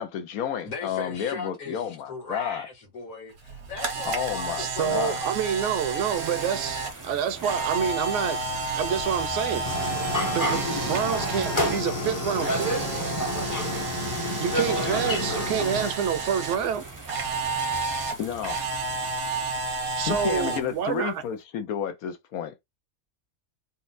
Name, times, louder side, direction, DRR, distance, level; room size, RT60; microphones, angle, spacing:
voice 1, 0.0-2.7 4.0-5.2 18.2-18.6 20.1-22.5, left 9 dB, 85° left, 1.1 m, -31 dB
voice 2, 0.6-5.3, left 3 dB, 65° left, 1.7 m, -37 dB
Camera, 3.4-11.8 12.1-16.6 17.1-20.6, right 3 dB, 85° right, 1.4 m, -31 dB
voice 3, 4.6-8.5 8.7-9.7 10.3-12.8 14.4-16.9 20.0-21.2, right 8 dB, 65° right, 0.9 m, -28 dB
sound 1, 6.0-21.3, right 3 dB, 20° right, 0.6 m, -43 dB
sound 2, 9.6-15.9, left 1 dB, 20° left, 0.6 m, -29 dB
4.1 x 2.1 x 2.5 m
omnidirectional pair, 1.5 m